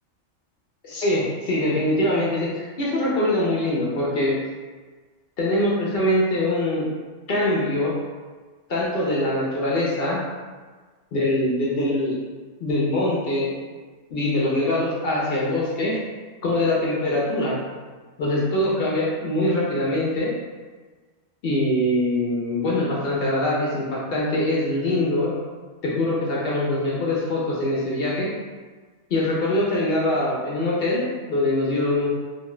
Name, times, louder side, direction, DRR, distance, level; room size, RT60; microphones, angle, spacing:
voice 1, 0.8-4.4 5.4-6.9 7.3-8.0 8.7-10.2 11.1-12.2 12.6-13.5 14.1-16.0 16.4-17.6 18.2-20.3 21.4-25.3 25.8-28.3 29.1-32.1, left 1 dB, 60° left, -5 dB, 0.6 m, -23 dB
2.4 x 2.2 x 2.9 m, 1.4 s
omnidirectional pair, 1.3 m